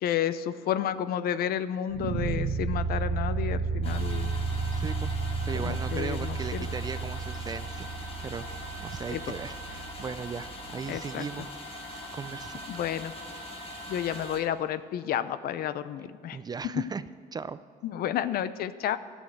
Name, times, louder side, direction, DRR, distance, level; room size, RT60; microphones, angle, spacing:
voice 1, 0.0-4.3 5.6-6.7 9.1-9.2 10.9-11.2 12.7-13.1 13.9-16.4 16.8-16.9 17.8-19.0, left 10 dB, 65° left, 13 dB, 0.6 m, -31 dB
sound 1, 1.9-10.9, right 4 dB, 55° right, 1.4 m, -32 dB
sound 2, 3.8-14.4, left 1 dB, 35° left, 1.7 m, -42 dB
voice 2, 4.7-5.1 5.4-8.5 8.8-11.5 11.8-12.6 16.3-17.0 17.3-17.6, right 5 dB, 25° right, 14 dB, 0.3 m, -37 dB
12.0 x 6.3 x 7.9 m, 2.1 s
cardioid pair, 110°, 17 cm